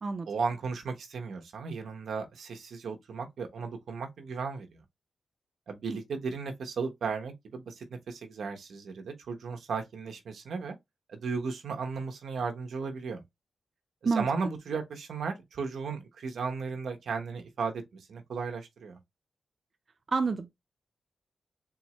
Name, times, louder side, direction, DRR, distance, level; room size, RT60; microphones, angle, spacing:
voice 1, 0.3-4.8 5.7-10.7 11.1-13.2 14.0-17.8 18.1-19.0, right 5 dB, 85° right, 1.1 m, -35 dB
voice 2, 20.1-20.6, right 4 dB, 45° right, 0.6 m, -28 dB
4.1 x 3.5 x 3.1 m
wide cardioid pair, 115°, 0 cm